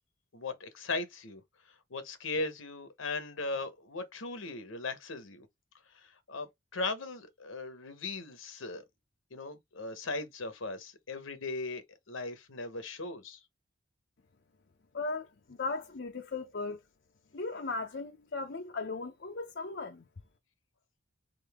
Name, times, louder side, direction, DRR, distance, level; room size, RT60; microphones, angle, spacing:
voice 1, 0.3-1.4 1.9-5.5 5.9-8.8 9.3-13.4, left 3 dB, 75° left, 1.0 m, -38 dB
voice 2, 14.9-16.8 17.3-20.0, left 3 dB, 55° left, 0.6 m, -37 dB
3.9 x 3.8 x 3.5 m
head